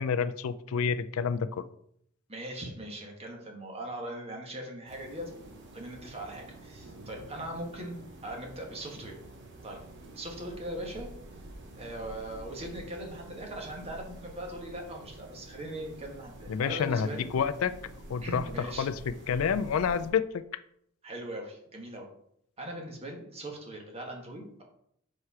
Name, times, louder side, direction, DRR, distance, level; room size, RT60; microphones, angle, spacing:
voice 1, 0.0-1.6 16.5-17.7 18.1-20.4, left 6 dB, 85° left, 13 dB, 0.4 m, -29 dB
voice 2, 2.3-9.2 9.6-9.8 10.1-11.1 11.8-17.3 18.2-18.9 21.0-22.0 22.6-24.6, right 1 dB, 30° right, 1 dB, 1.3 m, -40 dB
sound 1, 4.9-20.1, right 1 dB, 60° right, 0.9 m, -48 dB
4.8 x 4.2 x 4.7 m, 0.71 s
head